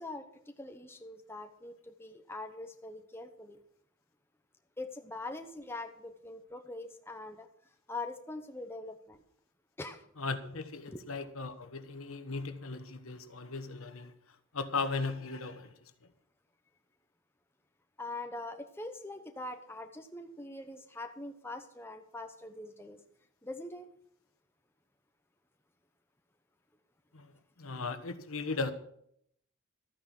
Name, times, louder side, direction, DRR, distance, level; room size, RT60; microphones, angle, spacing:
voice 1, 0.0-3.6 4.8-7.5 7.9-9.2 9.8-10.1 10.9-11.0 18.0-23.0 23.4-23.9, left 2 dB, 10° left, 0.9 m, -43 dB
voice 2, 10.2-14.1 14.5-16.1 27.1-28.7, left 3 dB, 85° left, 1.4 m, -37 dB
13.5 x 9.2 x 6.1 m
head